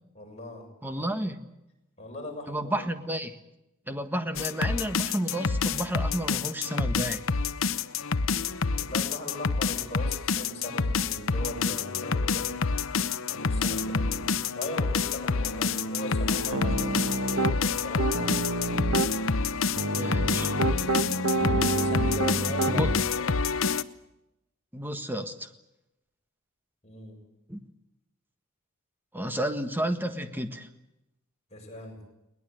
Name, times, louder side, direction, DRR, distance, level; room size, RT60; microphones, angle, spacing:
voice 1, 0.2-0.7 2.0-2.9 8.8-12.5 13.3-14.2 14.6-18.4 21.8-22.9 23.2-23.3 26.8-27.2 31.5-32.0, left 1 dB, 30° left, 1 dB, 7.0 m, -39 dB
voice 2, 0.8-1.4 2.5-3.4 3.9-7.2 19.9-20.5 22.7-22.9 24.7-25.5 27.5-27.6 29.1-30.7, right 1 dB, 10° right, 8 dB, 1.5 m, -31 dB
sound 1, 4.4-23.8, left 4 dB, 65° left, 0.9 m, -28 dB
Piano, 16.5-17.6 18.0-19.1 19.8-23.0, right 2 dB, 70° right, 1.5 m, -28 dB
22.0 x 19.5 x 9.2 m, 0.91 s
head